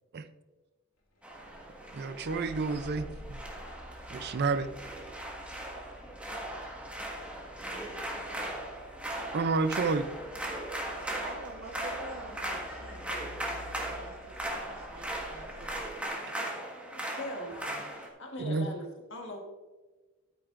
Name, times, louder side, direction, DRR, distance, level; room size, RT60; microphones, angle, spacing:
sound 1, 1.2-18.1, right 1 dB, 5° right, 1.5 m, -38 dB
sound 2, 1.3-16.0, left 1 dB, 80° left, 2.5 m, -51 dB
voice 1, 1.9-3.4 4.1-4.7 9.3-10.1 18.4-18.7, right 4 dB, 50° right, 12 dB, 0.5 m, -30 dB
voice 2, 11.0-15.8, right 2 dB, 80° right, 0 dB, 1.1 m, -47 dB
voice 3, 16.9-17.9 18.2-19.4, left 1 dB, 60° left, 2 dB, 1.4 m, -40 dB
12.0 x 9.2 x 2.5 m, 1.3 s
head